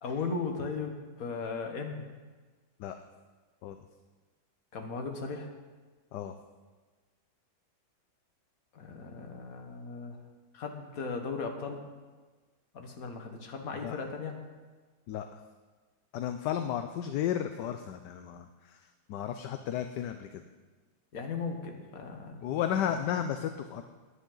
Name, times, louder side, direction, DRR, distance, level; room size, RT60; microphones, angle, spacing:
voice 1, 0.0-2.1 4.7-5.5 8.7-10.2 10.5-11.8 12.7-14.4 21.1-22.4, left 4 dB, 50° left, 3 dB, 1.7 m, -37 dB
voice 2, 15.1-15.4 16.1-20.4 22.4-23.8, left 10 dB, 70° left, 7 dB, 1.2 m, -33 dB
16.0 x 10.5 x 3.9 m, 1.4 s
omnidirectional pair, 2.0 m